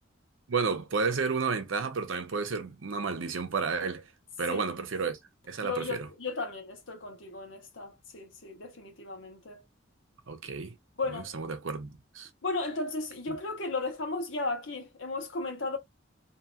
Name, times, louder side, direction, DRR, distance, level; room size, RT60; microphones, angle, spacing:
voice 1, 0.5-4.1 4.4-5.2 5.5-6.1 10.3-10.7 11.1-12.3, right 4 dB, 80° right, 0.7 m, -31 dB
voice 2, 5.6-9.6 11.0-11.3 12.4-15.8, left 3 dB, 75° left, 1.2 m, -35 dB
2.8 x 2.8 x 2.3 m
head